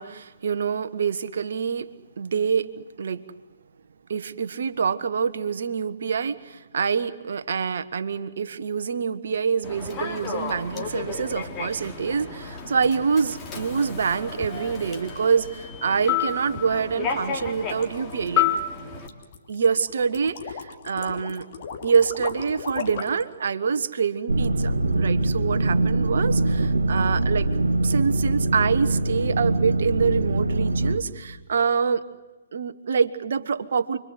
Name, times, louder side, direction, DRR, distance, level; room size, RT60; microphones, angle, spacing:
voice 1, 0.0-1.9 2.2-3.2 4.1-18.5 19.5-21.5 21.8-27.5 27.8-32.0 32.5-34.0, right 6 dB, 55° right, 11 dB, 1.4 m, -26 dB
Human voice / Subway metro underground, 9.6-19.1, left 7 dB, 20° left, 3.1 m, -31 dB
sound 1, 17.2-23.3, left 6 dB, 40° left, 2.8 m, -37 dB
sound 2, 24.3-31.0, right 2 dB, 70° right, 2.4 m, -23 dB
29.5 x 23.0 x 8.2 m, 1.2 s
figure-of-eight pair, 130°, 0 cm